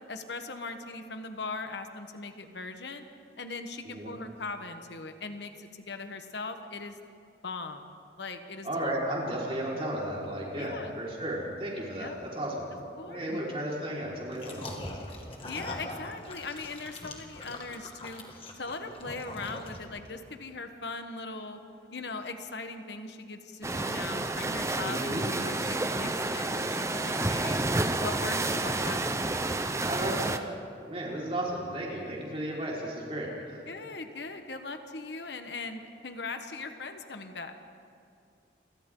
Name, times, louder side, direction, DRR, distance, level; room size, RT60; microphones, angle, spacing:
voice 1, 0.1-3.1 3.4-7.0 7.4-7.9 8.2-8.9 10.5-10.9 12.0-12.2 13.0-13.4 15.5-18.2 18.5-21.6 21.9-27.6 28.0-29.2 33.7-37.6, left 3 dB, 70° left, 7 dB, 1.3 m, -40 dB
voice 2, 8.6-12.7 13.1-15.0 24.8-25.3 29.9-30.5 30.8-33.6, right 1 dB, 30° right, -5 dB, 4.7 m, -34 dB
sound 1, 14.3-20.1, left 1 dB, 30° left, 2.1 m, -42 dB
sound 2, 23.6-30.4, right 2 dB, 15° right, 0.6 m, -30 dB
29.5 x 23.5 x 3.9 m, 2.4 s
head